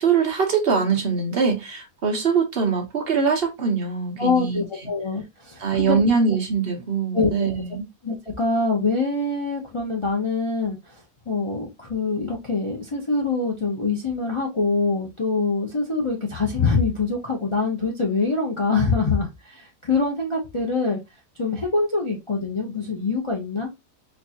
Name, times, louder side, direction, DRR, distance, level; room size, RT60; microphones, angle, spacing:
voice 1, 0.0-4.6 5.6-7.9, right 5 dB, 50° right, 0.9 m, -22 dB
voice 2, 4.2-6.0 7.1-7.5 8.0-10.9 11.3-21.0 21.4-23.7, left 4 dB, 35° left, 0.5 m, -24 dB
4.3 x 2.6 x 2.7 m
omnidirectional pair, 1.5 m